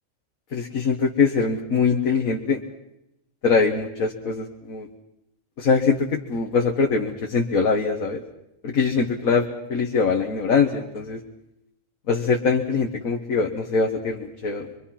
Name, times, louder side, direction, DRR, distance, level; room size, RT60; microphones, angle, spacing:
voice 1, 0.5-2.6 3.4-4.9 5.6-8.2 8.6-11.2 12.1-14.8, left 5 dB, 85° left, 1 dB, 1.9 m, -23 dB
25.5 x 24.0 x 5.8 m, 0.88 s
omnidirectional pair, 1.4 m